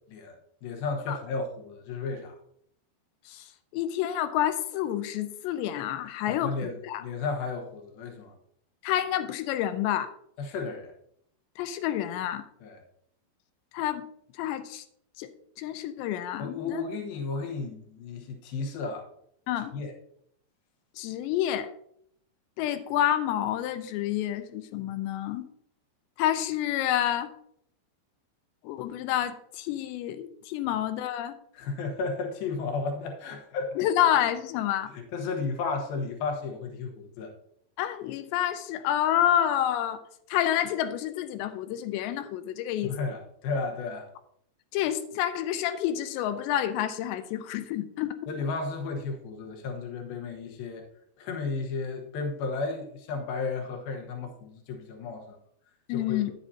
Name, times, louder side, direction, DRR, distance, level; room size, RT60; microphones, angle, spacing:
voice 1, 0.6-2.4 6.3-8.3 10.4-10.9 12.6-12.8 16.4-19.1 19.7-19.9 30.7-30.8 31.5-33.9 34.9-37.3 42.8-44.1 48.3-50.8 51.2-55.4 55.9-56.3, left 4 dB, 65° left, 3 dB, 2.7 m, -33 dB
voice 2, 3.7-7.0 8.8-10.1 11.6-12.4 13.7-14.0 14.4-14.8 15.2-15.3 15.6-16.8 19.5-19.7 21.0-21.7 22.6-25.5 26.2-27.3 28.6-31.4 33.8-34.9 37.8-40.0 40.3-43.0 44.7-48.1 55.9-56.3, left 11 dB, 85° left, 11 dB, 2.8 m, -28 dB
10.5 x 8.5 x 2.7 m, 0.69 s
omnidirectional pair, 5.1 m